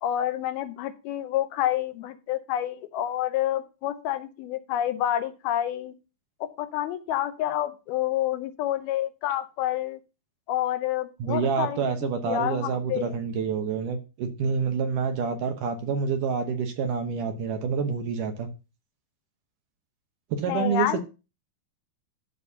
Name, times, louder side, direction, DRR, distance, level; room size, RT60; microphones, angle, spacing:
voice 1, 0.0-5.9 6.4-10.0 10.5-13.2 20.5-21.0, left 12 dB, 80° left, 9 dB, 2.7 m, -28 dB
voice 2, 11.2-18.5 20.3-21.0, right 6 dB, 70° right, 5 dB, 2.3 m, -27 dB
12.5 x 4.2 x 5.5 m, 0.30 s
omnidirectional pair, 4.5 m